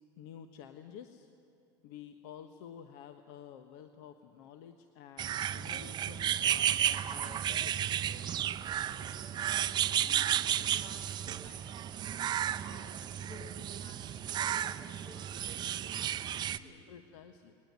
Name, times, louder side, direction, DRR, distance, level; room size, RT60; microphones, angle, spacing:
voice 1, 0.2-1.3 1.8-8.2 16.9-17.6, left 9 dB, 75° left, 8 dB, 1.3 m, -51 dB
sound 1, 5.2-16.6, right 10 dB, 35° right, 0.7 m, -33 dB
voice 2, 8.8-16.1 16.5-16.9, left 3 dB, 40° left, 4 dB, 5.3 m, -56 dB
20.5 x 19.5 x 9.4 m, 2.8 s
supercardioid pair, 125°, 13 cm